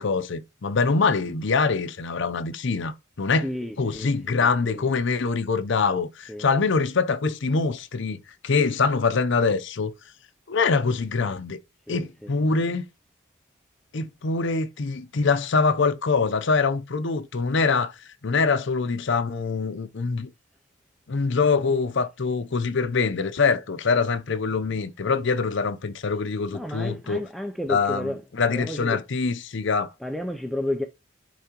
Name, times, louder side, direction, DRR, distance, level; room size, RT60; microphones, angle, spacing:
voice 1, 0.0-3.5 3.8-8.2 8.4-9.9 10.5-11.6 11.9-12.9 13.9-17.9 18.2-20.3 21.1-27.2 27.7-29.9, left 4 dB, 65° left, 0.6 m, -24 dB
voice 2, 3.4-4.9 6.3-6.5 11.9-12.3 26.5-28.2 28.5-29.0 30.0-30.8, left 1 dB, ahead, 0.4 m, -32 dB
10.0 x 3.4 x 2.9 m
head